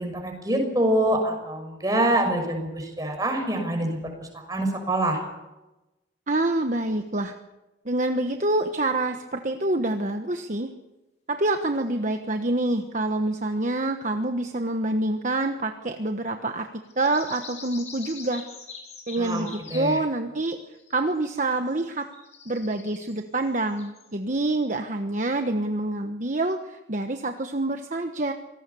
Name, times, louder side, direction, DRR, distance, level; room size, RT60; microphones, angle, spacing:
voice 1, 0.0-5.2 19.2-20.0, right 1 dB, 20° right, 4 dB, 6.3 m, -26 dB
voice 2, 6.3-7.3 7.8-10.7 11.3-16.7 17.0-18.4 19.1-20.6 20.9-22.1 22.4-28.3, right 2 dB, 45° right, 5 dB, 1.2 m, -26 dB
sound 1, 12.1-12.4 13.4-13.5 16.8-19.9 20.7-21.2 21.5-24.1, left 5 dB, 40° left, 6.6 m, -44 dB
26.0 x 18.5 x 7.0 m, 1.0 s
head